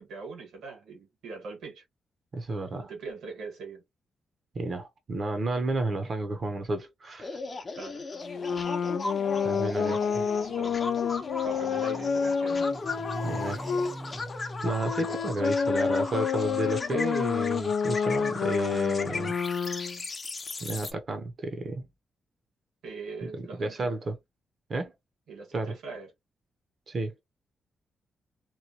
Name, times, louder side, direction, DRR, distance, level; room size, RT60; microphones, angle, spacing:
voice 1, 0.0-1.8 2.8-3.8 7.7-8.0 8.4-8.5 9.3-10.9 11.4-12.8 15.0-15.2 22.8-23.9 25.3-26.1, right 4 dB, 90° right, 1.6 m, -42 dB
voice 2, 2.3-2.9 4.5-7.4 9.4-10.0 13.2-13.9 14.6-19.4 20.6-21.9 23.2-24.2 24.7-24.9 25.5-25.7 26.9-27.2, right 2 dB, 45° right, 0.7 m, -32 dB
sound 1, 7.2-20.9, left 3 dB, 35° left, 0.7 m, -37 dB
sound 2, 8.2-13.9 14.6-20.0, left 6 dB, 70° left, 0.4 m, -29 dB
Motorcycle, 10.0-18.2, equal, 5° right, 0.6 m, -44 dB
3.0 x 2.2 x 2.7 m
cardioid pair, 110°, 0 cm